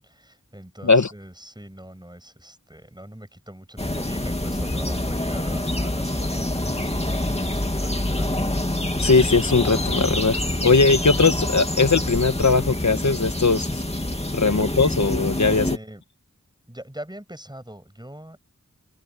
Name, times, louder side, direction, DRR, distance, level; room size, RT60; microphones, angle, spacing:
voice 1, 0.0-8.4 15.4-16.0 16.7-18.4, right 1 dB, 15° right, 7.9 m, -42 dB
sound 1, 3.8-15.8, left 1 dB, 20° left, 2.5 m, -26 dB
voice 2, 9.0-13.7 14.3-15.7, left 4 dB, 65° left, 1.4 m, -19 dB
open air
wide cardioid pair, 50°, 31 cm